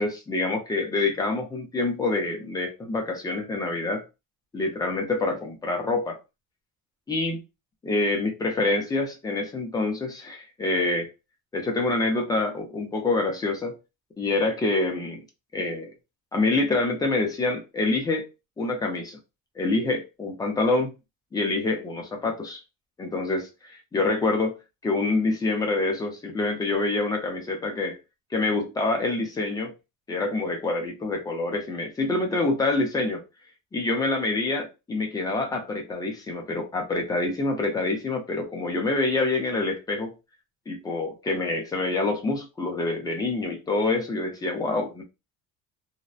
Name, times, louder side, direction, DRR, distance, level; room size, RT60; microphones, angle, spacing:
voice 1, 0.0-4.0 4.5-6.2 7.1-7.4 7.8-11.1 11.5-13.8 14.2-15.2 15.5-15.9 16.3-18.3 18.6-19.2 19.6-21.0 21.3-22.6 23.0-24.6 24.8-28.0 28.3-29.7 30.1-33.2 33.7-40.1 40.7-45.0, left 2 dB, 10° left, 0.4 m, -26 dB
2.7 x 2.0 x 2.3 m
cardioid pair, 160°, 32 cm